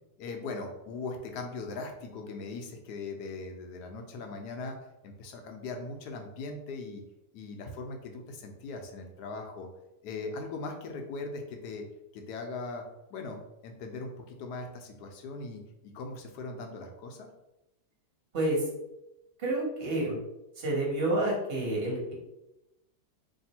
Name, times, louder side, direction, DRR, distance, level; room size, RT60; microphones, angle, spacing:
voice 1, 0.2-4.8 5.0-7.0 7.3-9.7 10.0-11.8 12.1-12.8 13.1-17.3, left 3 dB, 85° left, 3 dB, 1.3 m, -40 dB
voice 2, 18.3-18.6 19.4-20.2 20.6-22.1, right 1 dB, 40° right, -3 dB, 1.5 m, -29 dB
3.3 x 2.7 x 4.2 m, 0.91 s
omnidirectional pair, 1.8 m